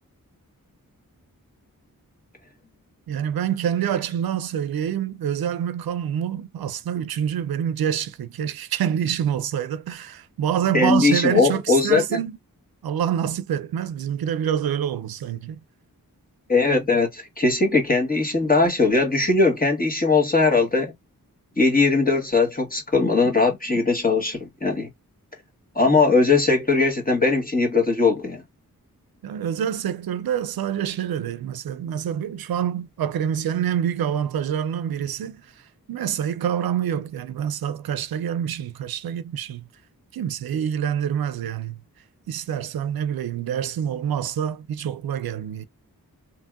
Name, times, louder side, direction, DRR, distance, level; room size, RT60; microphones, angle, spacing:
voice 1, 3.1-12.4 12.8-15.6 26.1-26.2 29.2-35.5 35.9-39.7 40.1-41.8 42.3-45.6, right 9 dB, 90° right, 0.5 m, -26 dB
voice 2, 10.7-12.2 16.5-20.9 21.6-24.9 25.7-28.4, left 3 dB, 25° left, 1.4 m, -20 dB
3.0 x 2.6 x 2.3 m
wide cardioid pair, 70°, 35 cm